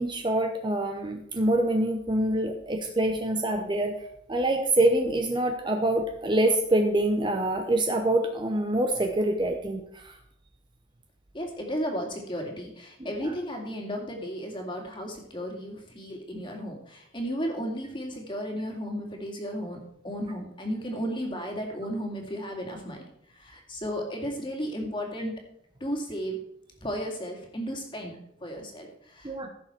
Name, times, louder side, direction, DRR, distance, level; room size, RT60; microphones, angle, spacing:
voice 1, 0.0-4.0 4.3-10.1 13.0-13.3 29.2-29.5, right 1 dB, 25° right, 4 dB, 0.8 m, -25 dB
voice 2, 11.3-23.0 23.3-25.4 25.8-26.4 26.8-29.5, equal, 25° left, 1 dB, 2.3 m, -34 dB
15.0 x 6.7 x 4.4 m, 0.73 s
head